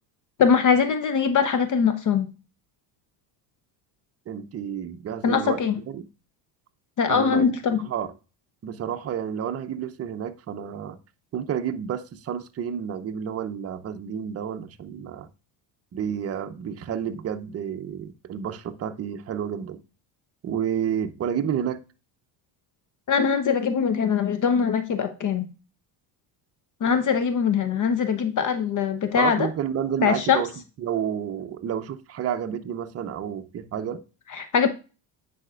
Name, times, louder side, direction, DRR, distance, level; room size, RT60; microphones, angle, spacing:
voice 1, 0.4-2.3 5.2-5.8 7.0-7.8 23.1-25.5 26.8-29.5 30.0-30.4 34.3-34.7, left 6 dB, 40° left, 0.8 m, -22 dB
voice 2, 4.3-6.0 7.1-7.5 7.8-8.1 8.6-11.0 11.3-15.3 15.9-19.8 20.4-21.8 29.2-30.5 30.8-34.0, right 8 dB, 30° right, 0.7 m, -30 dB
9.7 x 4.3 x 2.4 m
supercardioid pair, 100°, 47 cm